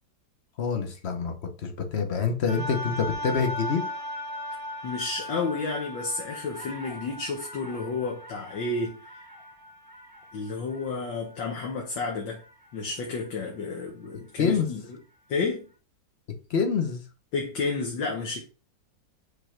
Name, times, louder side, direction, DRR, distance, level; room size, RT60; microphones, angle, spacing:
voice 1, 0.6-3.8 14.4-14.7 16.5-17.0, left 5 dB, 50° left, 0.8 m, -26 dB
sound 1, 2.5-12.7 13.3-13.4, left 1 dB, 50° right, 1.8 m, -38 dB
voice 2, 4.8-9.3 10.3-12.4 12.7-15.0 15.3-15.7 17.3-18.4, left 3 dB, 80° left, 1.9 m, -31 dB
5.2 x 4.2 x 4.4 m
omnidirectional pair, 2.0 m